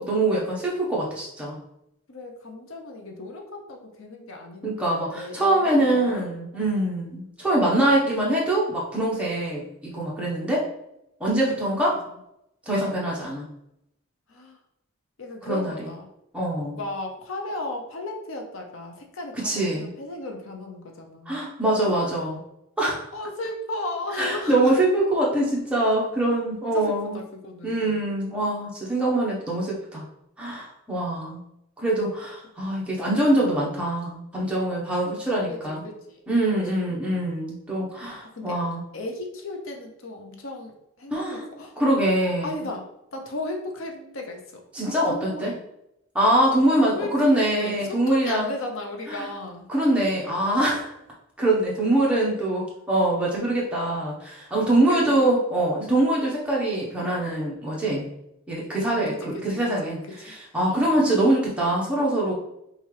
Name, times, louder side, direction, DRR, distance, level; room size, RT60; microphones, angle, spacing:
voice 1, 0.0-1.6 4.6-10.7 11.2-12.0 12.7-13.4 15.4-15.7 16.3-16.8 19.3-19.9 21.3-22.4 22.8-23.1 24.2-27.2 27.6-30.0 30.4-31.4 31.8-35.8 36.3-38.8 41.1-41.4 41.8-42.6 44.7-45.5 46.1-48.5 49.1-49.3 49.7-50.9 51.4-58.0 58.5-62.3, right 1 dB, 5° right, -5 dB, 1.0 m, -24 dB
voice 2, 2.1-6.4 6.8-7.0 14.3-14.6 15.2-16.1 16.7-21.4 21.8-22.1 23.1-24.7 26.7-28.0 32.8-33.6 35.0-35.2 35.5-35.6 35.8-36.2 36.7-36.9 38.3-38.6 38.9-41.8 42.4-44.4 45.1-45.6 46.7-49.7 54.9-55.3 58.8-60.3 60.6-61.1, left 2 dB, 80° left, 2 dB, 0.7 m, -36 dB
5.5 x 2.5 x 3.3 m, 0.80 s
head